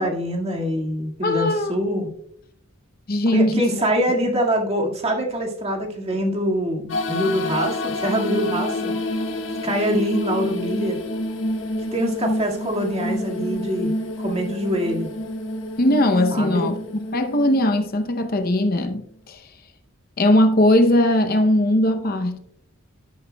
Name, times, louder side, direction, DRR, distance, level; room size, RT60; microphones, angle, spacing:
voice 1, 0.0-2.1 3.3-9.1 9.6-11.0 11.9-15.1 16.3-16.7, equal, 30° right, 1.9 m, -24 dB
voice 2, 1.2-1.7 3.1-3.6 15.8-16.8 17.1-19.4 20.2-22.4, left 1 dB, 45° left, 0.7 m, -19 dB
sound 1, 6.9-18.7, left 1 dB, 60° left, 1.6 m, -28 dB
11.5 x 11.0 x 2.3 m
head